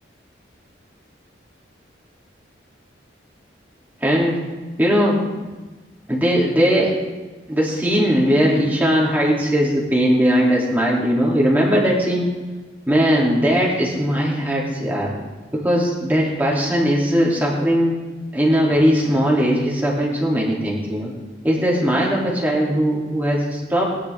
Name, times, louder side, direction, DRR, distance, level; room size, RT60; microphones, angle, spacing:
voice 1, 4.0-4.4 4.8-5.2 6.1-6.9 7.5-12.3 12.9-15.2 15.5-17.9 18.3-21.1 21.4-23.8, equal, 10° right, -4 dB, 2.9 m, -19 dB
21.0 x 10.5 x 3.6 m, 1.2 s
head